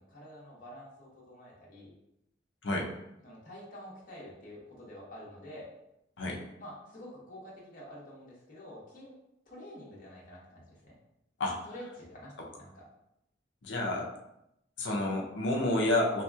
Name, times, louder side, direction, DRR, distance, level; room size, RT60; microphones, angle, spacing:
voice 1, 0.0-1.9 3.2-5.7 6.6-9.1 9.5-10.9 11.6-12.8, equal, 50° left, -5 dB, 0.9 m, -48 dB
voice 2, 13.6-14.1 14.8-16.2, left 1 dB, 75° left, -1 dB, 0.6 m, -29 dB
3.3 x 2.9 x 2.3 m, 0.84 s
head